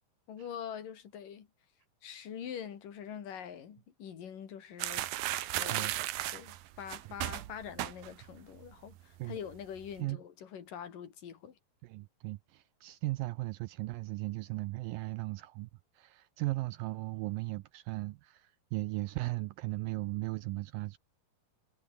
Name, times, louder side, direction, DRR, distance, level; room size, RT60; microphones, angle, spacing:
voice 1, 0.3-1.5 2.0-5.1 5.6-5.9 6.3-11.6, left 8 dB, 55° left, 4.1 m, -44 dB
sound 1, 4.8-8.4 8.6-8.9 9.2-9.9, right 14 dB, 70° right, 2.6 m, -35 dB
voice 2, 11.8-15.7 15.9-21.0, right 19 dB, 90° right, 2.0 m, -37 dB
omnidirectional pair, 4.7 m